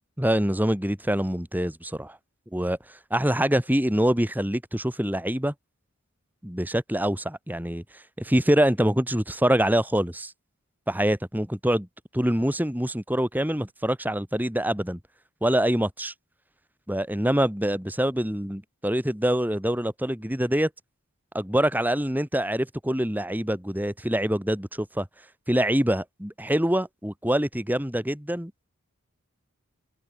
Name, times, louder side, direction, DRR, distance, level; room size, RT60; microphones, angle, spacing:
voice 1, 0.2-2.2 2.5-2.8 3.1-5.5 6.4-7.8 8.2-10.3 10.9-11.9 12.1-15.0 15.4-16.1 16.9-20.7 21.3-25.1 25.5-28.5, right 1 dB, 10° right, 2.2 m, -25 dB
head